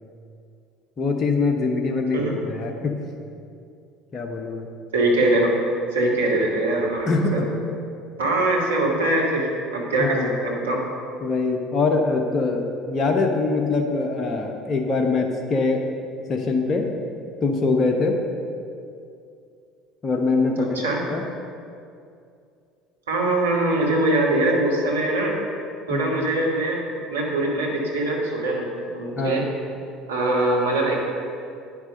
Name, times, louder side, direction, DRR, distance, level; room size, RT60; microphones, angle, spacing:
voice 1, 1.0-2.9 4.1-4.7 7.1-7.5 10.0-10.3 11.2-15.9 16.3-16.9 17.4-18.2 20.0-20.8 21.1-21.3 25.9-26.2 29.2-29.5, left 3 dB, 35° left, 2 dB, 1.0 m, -23 dB
voice 2, 4.9-5.5 5.9-7.4 8.2-10.8 20.6-21.0 23.1-25.4 25.9-26.8 27.1-29.5 30.1-31.0, right 2 dB, 80° right, -3 dB, 1.8 m, -22 dB
9.3 x 6.0 x 6.5 m, 2.5 s
hypercardioid pair, 65°, 0 cm